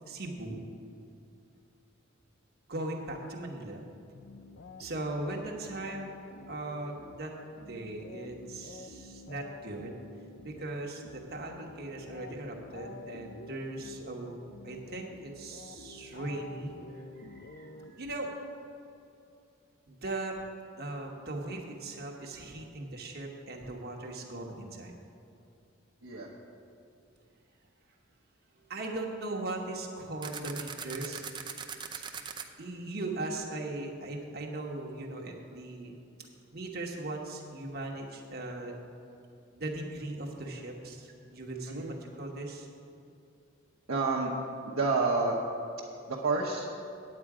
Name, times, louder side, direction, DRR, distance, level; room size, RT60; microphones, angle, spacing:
voice 1, 0.1-0.6 2.7-3.8 4.8-6.1 6.5-7.3 7.7-9.9 10.4-14.4 14.6-18.3 19.9-20.4 20.8-24.9 28.7-31.3 31.9-32.0 32.6-35.9 36.5-38.7 39.5-42.7, right 2 dB, 50° right, 0 dB, 1.2 m, -39 dB
sound 1, 4.1-18.4, left 3 dB, 50° left, 0.4 m, -49 dB
sound 2, 30.2-32.4, right 6 dB, 25° right, 0.5 m, -40 dB
voice 2, 43.9-44.3 44.7-45.4 46.1-46.7, right 3 dB, 80° right, -5 dB, 1.0 m, -29 dB
9.0 x 8.6 x 4.9 m, 2.6 s
head